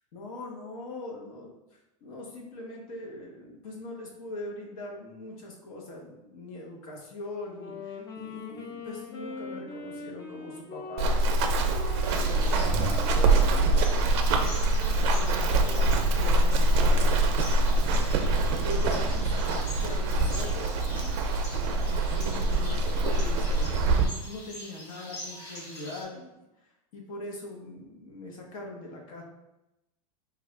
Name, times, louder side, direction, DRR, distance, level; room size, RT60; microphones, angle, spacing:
voice 1, 0.1-14.2 14.9-17.7 18.4-29.2, left 2 dB, 65° left, 0 dB, 1.0 m, -42 dB
Wind instrument woodwind instrument, 7.5-16.1, left 3 dB, 20° left, 0.4 m, -43 dB
Run, 11.0-24.1, right 2 dB, 50° right, 0.4 m, -24 dB
sound 1, 12.0-26.0, left 1 dB, 40° left, 1.4 m, -44 dB
3.3 x 2.4 x 3.5 m, 0.94 s
supercardioid pair, 150°, 19 cm